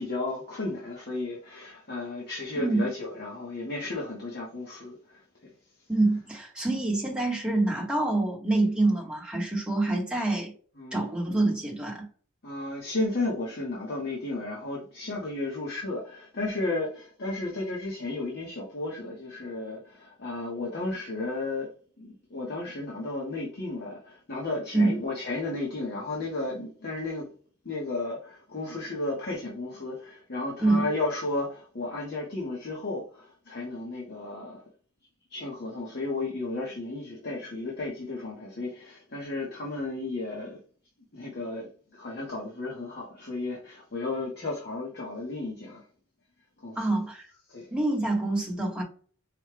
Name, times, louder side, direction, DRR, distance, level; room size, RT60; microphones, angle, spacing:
voice 1, 0.0-5.5 10.8-11.0 12.4-21.7 22.0-27.3 27.6-34.6 35.3-40.6 41.1-45.8 46.6-47.0 47.5-47.7, left 2 dB, 50° left, 1.0 m, -33 dB
voice 2, 2.6-2.9 5.9-10.5 10.9-12.1 24.7-25.0 30.6-30.9 46.8-47.3 47.7-48.8, right 2 dB, 5° right, 1.0 m, -26 dB
4.9 x 2.3 x 3.3 m
head